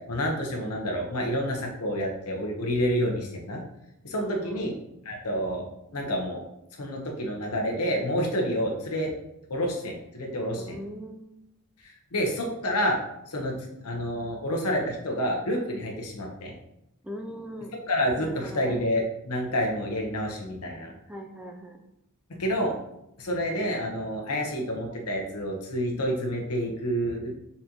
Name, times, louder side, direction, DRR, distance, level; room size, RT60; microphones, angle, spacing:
voice 1, 0.1-3.6 4.0-4.7 5.0-5.7 5.9-6.4 6.7-9.1 9.5-10.8 11.8-13.0 13.3-16.5 17.9-20.9 22.4-22.8 23.2-27.3, equal, 90° left, 0 dB, 0.9 m, -28 dB
voice 2, 4.2-4.6 10.6-11.3 17.0-17.7 18.2-18.8 21.1-21.8, equal, 5° right, 3 dB, 0.3 m, -40 dB
4.1 x 2.9 x 3.8 m, 0.83 s
head